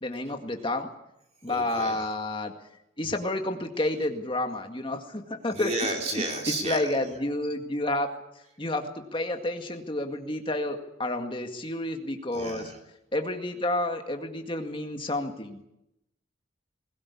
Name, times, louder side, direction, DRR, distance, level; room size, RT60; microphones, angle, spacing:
voice 1, 0.0-0.9 1.4-2.5 3.0-5.7 6.1-8.1 8.6-12.7 13.1-15.6, left 1 dB, 25° left, 5 dB, 2.0 m, -30 dB
voice 2, 1.5-2.1 5.5-6.8 12.3-12.8, right 2 dB, 30° right, 2 dB, 3.2 m, -32 dB
21.0 x 17.5 x 8.5 m, 0.86 s
head